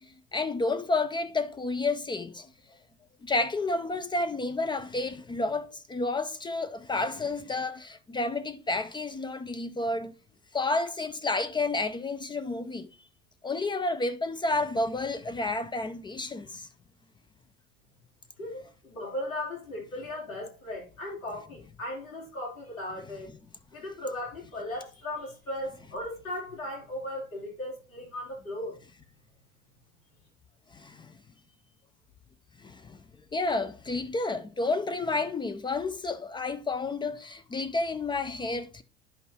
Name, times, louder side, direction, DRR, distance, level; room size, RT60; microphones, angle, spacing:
voice 1, 0.0-2.5 3.2-10.1 10.5-12.9 13.4-16.7 30.7-31.2 32.6-33.0 33.3-38.8, left 2 dB, 15° left, 0.3 m, -30 dB
voice 2, 18.4-23.3 23.7-28.8, left 1 dB, 85° left, 3.5 m, -37 dB
10.5 x 5.3 x 2.8 m
figure-of-eight pair, 70°, 40 cm